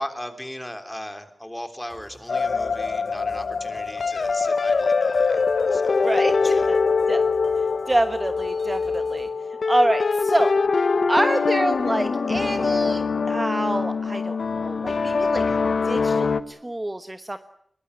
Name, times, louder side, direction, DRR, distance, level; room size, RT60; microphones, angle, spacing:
voice 1, 0.0-6.7 15.5-15.6, left 1 dB, 10° left, 7 dB, 3.5 m, -37 dB
sound 1, 1.9-9.3, right 2 dB, 75° right, 4.6 m, -50 dB
sound 2, 2.3-16.4, left 4 dB, 75° left, 1.1 m, -23 dB
voice 2, 6.0-6.4 6.7-6.8 7.1-7.2 7.6-9.3 9.7-10.5 11.1-15.4 15.8-17.4, right 1 dB, 20° right, 9 dB, 1.2 m, -26 dB
22.0 x 20.0 x 9.8 m, 0.66 s
wide cardioid pair, 75°, 0 cm